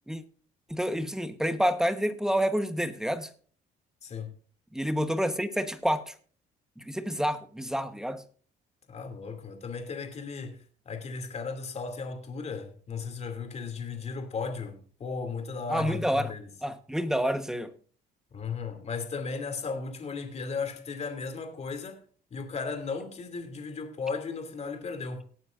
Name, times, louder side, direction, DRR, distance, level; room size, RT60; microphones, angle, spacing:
voice 1, 0.7-3.3 4.7-6.1 6.8-8.2 15.7-16.3 16.6-17.7, equal, 5° right, 1.1 m, -28 dB
voice 2, 4.0-4.3 8.9-10.6 10.9-16.4 18.3-22.0 22.3-25.2, left 5 dB, 40° left, 2.5 m, -35 dB
18.0 x 9.3 x 2.5 m
cardioid pair, 110°, 17 cm